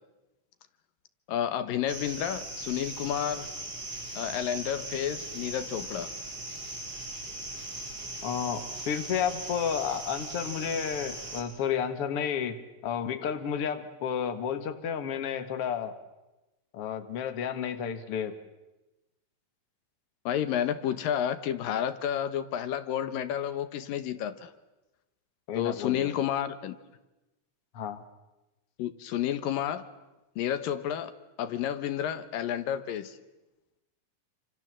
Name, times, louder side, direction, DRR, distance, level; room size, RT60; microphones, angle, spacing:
voice 1, 1.3-3.5 4.2-6.1 20.3-24.5 25.6-26.8 28.8-29.9 30.4-31.1 31.4-33.2, left 10 dB, 80° left, 12 dB, 2.9 m, -30 dB
sound 1, 1.9-11.4, right 2 dB, 40° right, 6.2 m, -39 dB
voice 2, 8.2-12.6 12.8-15.9 16.7-18.4 25.5-26.1 27.7-28.0, left 8 dB, 50° left, 9 dB, 2.3 m, -31 dB
28.0 x 26.5 x 7.6 m, 1.0 s
omnidirectional pair, 3.9 m